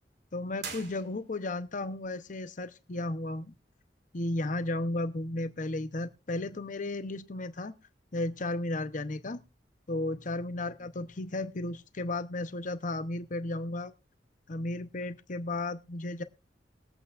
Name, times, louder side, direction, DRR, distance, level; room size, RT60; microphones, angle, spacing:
voice 1, 0.3-3.5 4.1-7.7 8.1-9.4 9.9-13.9 14.5-16.2, left 2 dB, 50° left, 0.8 m, -34 dB
sound 1, 0.6-1.6, right 5 dB, 65° right, 3.0 m, -43 dB
20.5 x 8.6 x 2.4 m
head